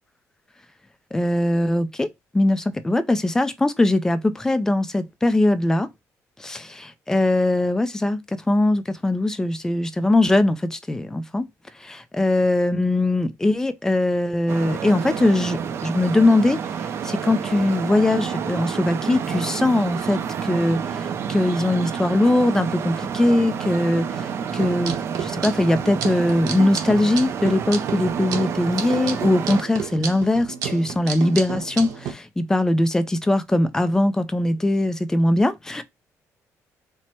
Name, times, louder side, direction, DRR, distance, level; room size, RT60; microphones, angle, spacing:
voice 1, 1.1-5.9 6.4-11.4 11.8-16.6 17.0-35.8, left 1 dB, 10° left, 0.4 m, -21 dB
Traffic noise roadway noise, 14.5-29.6, right 7 dB, 50° right, 0.5 m, -29 dB
sound 1, 24.5-32.1, right 7 dB, 80° right, 0.9 m, -32 dB
4.4 x 2.1 x 4.2 m
cardioid pair, 160°, 6 cm